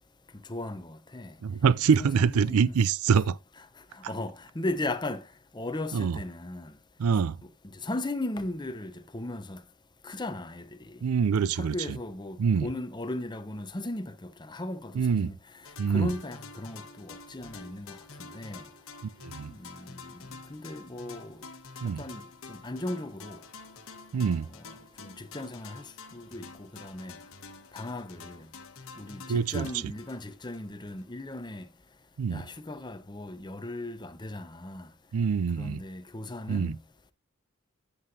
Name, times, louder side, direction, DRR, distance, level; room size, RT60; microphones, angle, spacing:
voice 1, 0.5-1.4 2.0-2.8 3.1-3.2 3.9-5.3 5.5-6.7 7.8-9.6 10.0-11.0 11.5-15.3 15.9-18.6 19.5-20.2 20.5-21.4 22.0-22.2 22.5-23.4 24.1-24.6 25.0-27.1 27.7-28.5 29.0-31.7 32.3-34.9 35.6-36.8, left 2 dB, 20° left, 0.8 m, -37 dB
voice 2, 1.4-3.4 4.0-4.1 5.9-6.2 7.0-7.4 11.0-12.0 12.4-12.7 15.0-15.3 15.8-16.1 19.2-19.5 21.8-22.0 24.1-24.5 29.3-29.7 32.2-32.4 35.1-35.8 36.5-36.8, right 6 dB, 85° right, 0.4 m, -25 dB
sound 1, 15.6-31.1, left 4 dB, 70° left, 1.4 m, -48 dB
11.0 x 7.8 x 2.7 m
head